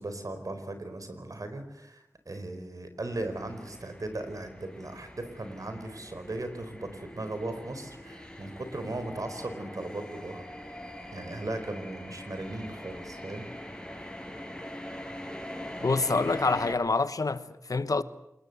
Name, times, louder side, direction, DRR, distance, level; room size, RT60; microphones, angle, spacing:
voice 1, 0.0-10.4 11.1-13.5, right 2 dB, 75° right, 4.5 m, -37 dB
sound 1, 3.0-16.7, left 1 dB, 10° left, 6.4 m, -43 dB
voice 2, 15.8-18.0, left 3 dB, 85° left, 1.1 m, -26 dB
27.0 x 21.0 x 8.0 m
wide cardioid pair, 45°, 6 cm